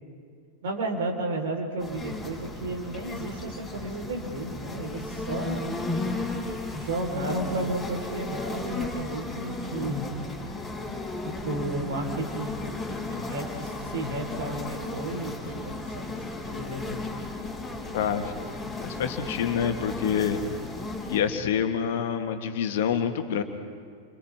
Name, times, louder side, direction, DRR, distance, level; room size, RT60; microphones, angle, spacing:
voice 1, 0.6-5.6 6.7-10.1 11.4-17.0, right 2 dB, 55° right, 1 dB, 4.1 m, -33 dB
sound 1, 1.8-21.2, left 2 dB, 5° left, 5.4 m, -35 dB
voice 2, 17.9-18.3 18.8-20.4 21.1-23.4, left 8 dB, 55° left, 6 dB, 1.6 m, -27 dB
29.5 x 26.0 x 3.6 m, 2.2 s
figure-of-eight pair, 90°, 0 cm